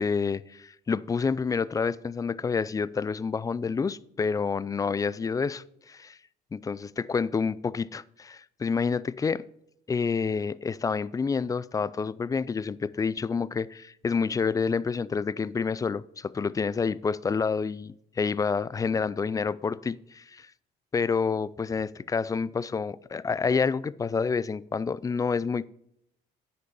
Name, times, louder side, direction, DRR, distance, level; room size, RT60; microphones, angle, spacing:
voice 1, 0.0-6.2 6.5-9.4 9.9-20.5 20.9-25.7, left 5 dB, 20° left, 0.4 m, -28 dB
9.6 x 6.8 x 5.3 m
cardioid pair, 110°, 17 cm